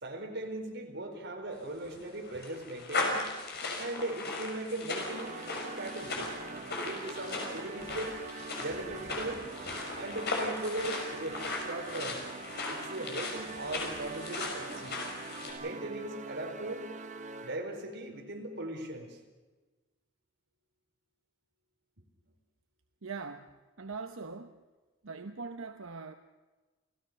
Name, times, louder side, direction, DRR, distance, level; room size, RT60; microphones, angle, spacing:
voice 1, 0.0-3.3 3.8-5.4 5.8-6.3 6.8-8.2 8.6-9.5 10.0-12.2 12.7-15.0 15.6-16.8 17.4-19.2, right 1 dB, 60° right, 2 dB, 4.4 m, -39 dB
sound 1, 1.6-15.5, left 2 dB, 55° left, 5.7 m, -37 dB
sound 2, 5.1-17.8, right 4 dB, 40° right, 1.1 m, -44 dB
voice 2, 23.0-23.5 23.8-24.6 25.0-26.2, right 4 dB, 90° right, 7 dB, 1.0 m, -41 dB
29.0 x 16.5 x 6.7 m, 1.2 s
head